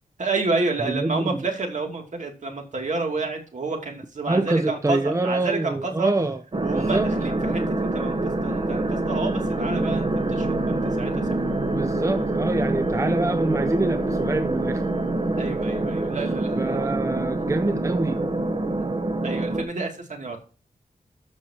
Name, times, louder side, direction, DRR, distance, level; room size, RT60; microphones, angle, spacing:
voice 1, 0.2-6.1 6.6-11.6 15.4-16.9 17.4-17.5 19.2-20.4, right 3 dB, 55° right, 2.7 m, -30 dB
voice 2, 0.9-1.4 4.3-6.4 6.7-7.1 11.8-14.9 16.6-18.3, right 2 dB, 20° right, 0.5 m, -25 dB
sound 1, 6.5-19.6, right 2 dB, 35° right, 1.1 m, -25 dB
sound 2, 9.1-15.5, left 5 dB, 10° left, 4.9 m, -39 dB
13.5 x 6.3 x 2.9 m
wide cardioid pair, 125°, 15 cm